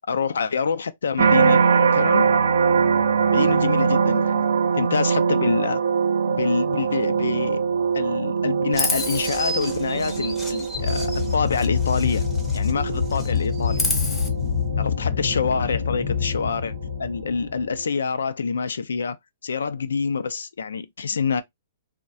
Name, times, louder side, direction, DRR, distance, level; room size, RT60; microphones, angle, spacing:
voice 1, 0.1-1.6 1.9-2.3 3.3-4.4 4.7-5.8 6.3-7.6 7.9-12.3 12.5-13.8 14.8-16.7 17.0-19.2 19.4-21.4, left 5 dB, 90° left, 0.3 m, -26 dB
sound 1, 1.2-16.4 16.9-17.3, right 6 dB, 80° right, 0.5 m, -23 dB
Chirp tweet, 8.7-12.8 13.1-14.3, left 2 dB, 10° left, 0.5 m, -30 dB
sound 2, 10.7-17.8, left 7 dB, 55° left, 0.7 m, -26 dB
2.3 x 2.1 x 2.6 m
hypercardioid pair, 140°, 0 cm